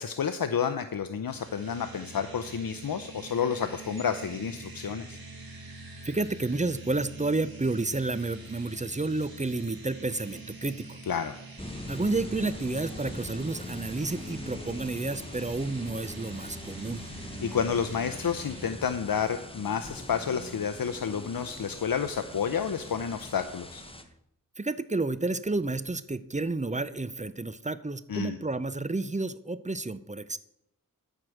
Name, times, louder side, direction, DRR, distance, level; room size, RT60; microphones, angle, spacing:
voice 1, 0.0-5.2 11.1-11.3 17.4-23.8 28.1-28.4, left 7 dB, 80° left, 10 dB, 0.6 m, -30 dB
sound 1, 1.3-18.7, right 3 dB, 85° right, 1.7 m, -45 dB
voice 2, 6.0-11.0 11.9-17.0 24.6-30.4, right 2 dB, 20° right, 14 dB, 0.6 m, -31 dB
sound 2, 11.6-24.0, left 1 dB, 15° left, 1.1 m, -42 dB
13.5 x 4.7 x 6.4 m, 0.79 s
wide cardioid pair, 45°, 35 cm